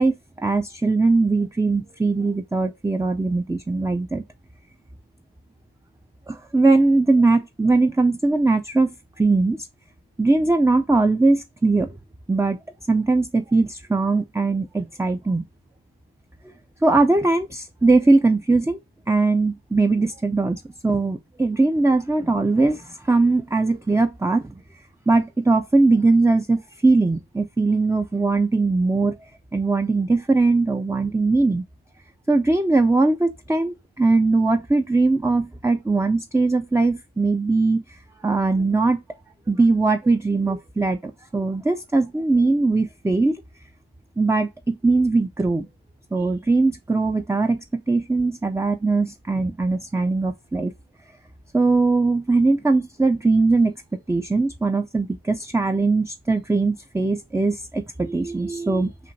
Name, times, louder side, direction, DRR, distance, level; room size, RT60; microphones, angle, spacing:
voice 1, 0.0-4.2 6.3-8.9 9.2-9.7 10.2-11.9 12.3-12.6 12.9-15.4 16.8-18.8 19.1-24.5 25.1-29.2 29.5-31.6 32.3-37.8 38.2-39.0 39.5-43.4 44.2-45.7 46.1-50.7 51.5-53.7 54.1-58.9, right 3 dB, 10° right, 0.3 m, -20 dB
5.8 x 2.5 x 2.7 m
wide cardioid pair, 40°, 38 cm